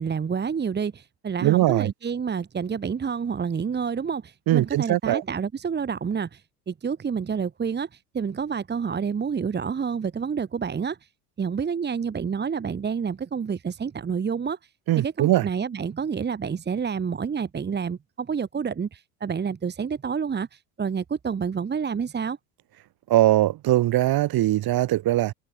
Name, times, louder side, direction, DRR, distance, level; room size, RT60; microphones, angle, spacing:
voice 1, 0.0-6.4 6.7-7.9 8.1-11.0 11.4-14.6 15.0-22.4, right 6 dB, 25° right, 1.4 m, -28 dB
voice 2, 1.4-1.9 4.5-5.2 14.9-15.5 23.1-25.3, right 15 dB, 60° right, 6.3 m, -21 dB
supercardioid pair, 85°, 41 cm